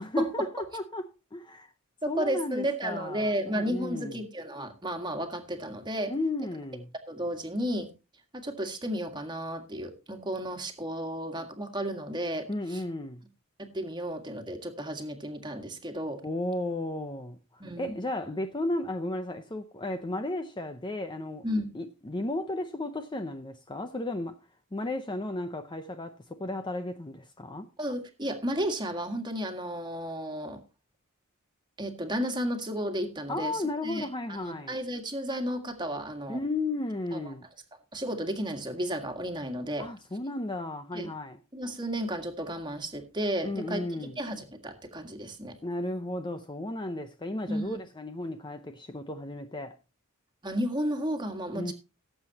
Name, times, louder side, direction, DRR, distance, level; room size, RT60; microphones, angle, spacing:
voice 1, 0.0-1.7 2.1-4.2 6.1-6.9 12.5-13.2 16.2-21.4 21.7-24.4 24.7-27.7 33.3-34.8 36.3-37.5 39.8-41.4 43.4-44.2 45.6-49.8 51.5-51.7, left 2 dB, 20° left, 0.7 m, -34 dB
voice 2, 2.0-6.1 7.1-7.9 8.3-12.8 13.6-16.2 17.6-18.0 21.4-21.7 27.8-30.6 31.8-36.4 37.1-37.3 37.9-39.9 40.9-41.1 41.5-45.5 47.5-47.8 50.4-51.7, equal, 20° right, 1.8 m, -33 dB
18.0 x 7.8 x 2.9 m
head